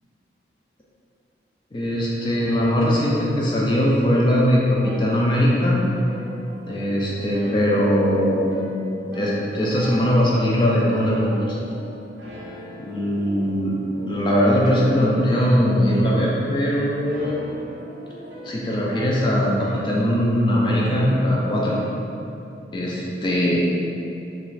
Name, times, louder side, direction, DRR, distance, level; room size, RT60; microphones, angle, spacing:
voice 1, 1.7-5.8 6.6-8.5 9.1-11.6 12.8-13.8 14.1-17.4 18.4-21.8 22.7-23.6, equal, 25° left, -4 dB, 0.3 m, -20 dB
sound 1, 2.4-22.0, equal, 80° right, 0.4 m, -40 dB
2.4 x 2.3 x 3.1 m, 2.7 s
head